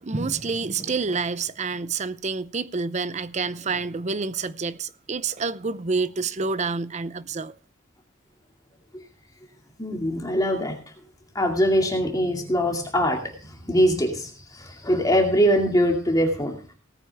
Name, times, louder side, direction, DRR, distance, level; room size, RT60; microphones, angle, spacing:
voice 1, 0.0-7.5, right 4 dB, 35° right, 0.6 m, -28 dB
voice 2, 9.8-10.8 11.3-16.7, equal, 20° left, 2.4 m, -23 dB
18.0 x 9.1 x 3.5 m
head